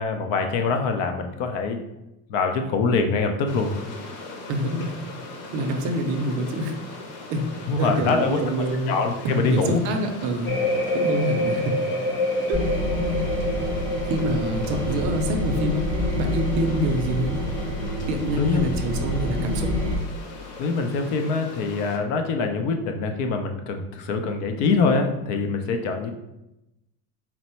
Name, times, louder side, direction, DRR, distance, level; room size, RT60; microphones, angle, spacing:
voice 1, 0.0-1.8 2.3-3.7 7.7-9.8 18.3-18.7 20.6-26.1, left 4 dB, 60° left, 5 dB, 0.6 m, -24 dB
sound 1, 3.5-22.0, left 3 dB, 80° left, 1.0 m, -40 dB
voice 2, 4.5-5.0 5.5-6.8 7.3-7.5 7.8-9.0 9.2-10.6 10.9-11.8 12.5-12.6 14.0-15.8 16.2-17.3 18.1-19.7, right 1 dB, 50° right, 4 dB, 0.5 m, -26 dB
sound 2, 10.5-19.1 19.4-19.9, left 1 dB, 35° left, 1.0 m, -29 dB
sound 3, 12.5-20.0, left 1 dB, 5° left, 0.6 m, -27 dB
4.3 x 2.0 x 4.2 m, 0.91 s
cardioid pair, 170°, 37 cm